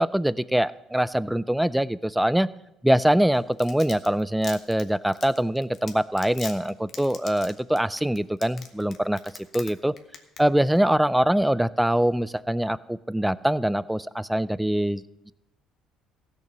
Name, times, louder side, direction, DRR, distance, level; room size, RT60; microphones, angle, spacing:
voice 1, 0.0-2.5 2.8-9.2 9.5-9.9 10.4-15.3, right 1 dB, 5° right, 18 dB, 0.3 m, -23 dB
Domestic sounds home sounds, 3.3-9.7 10.0-10.4 10.7-10.8, left 6 dB, 45° left, 1.2 m, -40 dB
15.5 x 6.7 x 5.9 m, 0.88 s
cardioid pair, 115°, 0 cm